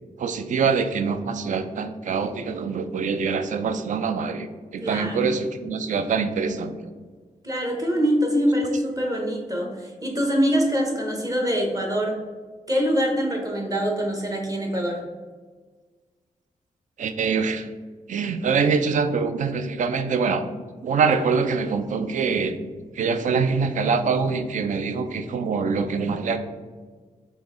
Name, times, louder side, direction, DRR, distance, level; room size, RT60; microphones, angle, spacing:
voice 1, 0.2-4.5 4.7-6.9 17.0-17.7 18.1-20.5 20.8-22.6 22.9-26.4, right 5 dB, 65° right, 10 dB, 0.4 m, -24 dB
voice 2, 4.8-5.2 7.4-12.2 12.7-15.0, equal, 25° right, 1 dB, 0.8 m, -24 dB
3.8 x 3.0 x 3.7 m, 1.4 s
wide cardioid pair, 130°, 14 cm